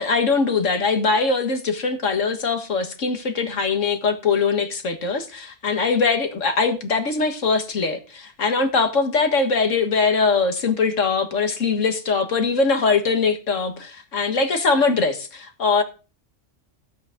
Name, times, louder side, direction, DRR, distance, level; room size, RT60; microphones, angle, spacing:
voice 1, 0.0-15.8, left 4 dB, 75° left, 2.0 m, -22 dB
15.5 x 8.6 x 3.8 m
omnidirectional pair, 1.3 m